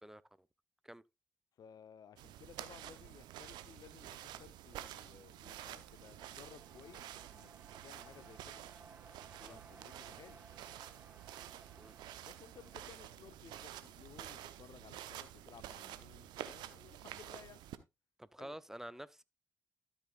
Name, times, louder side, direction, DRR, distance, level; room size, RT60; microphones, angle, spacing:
voice 1, 1.6-7.5 7.8-8.6 9.4-10.4 12.2-17.6 18.4-18.6, left 8 dB, 60° left, 0.8 m, -58 dB
sound 1, 2.2-17.8, right 12 dB, 75° right, 0.8 m, -50 dB
sound 2, 5.1-14.5, right 3 dB, 25° right, 3.6 m, -62 dB
voice 2, 18.2-19.2, right 1 dB, 5° right, 0.7 m, -49 dB
13.0 x 8.4 x 2.5 m
hypercardioid pair, 45°, 7 cm